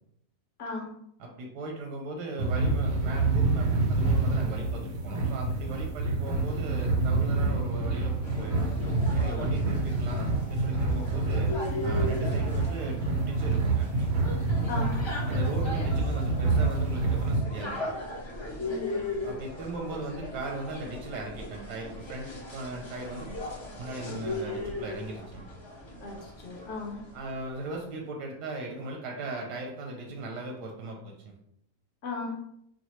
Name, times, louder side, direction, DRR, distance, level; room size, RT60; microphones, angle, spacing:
voice 1, 1.2-8.7 9.1-11.5 11.8-13.9 15.3-17.8 19.2-23.3 23.8-25.4 27.1-31.3, right 2 dB, 90° right, 1 dB, 1.2 m, -38 dB
sound 1, 2.4-17.4, right 3 dB, 75° right, 0.6 m, -27 dB
sound 2, 8.2-27.5, left 2 dB, 35° left, 0.4 m, -38 dB
voice 2, 18.6-19.0 26.0-27.0 32.0-32.3, left 3 dB, 65° left, -1 dB, 0.8 m, -36 dB
4.0 x 2.1 x 3.0 m, 0.73 s
omnidirectional pair, 1.8 m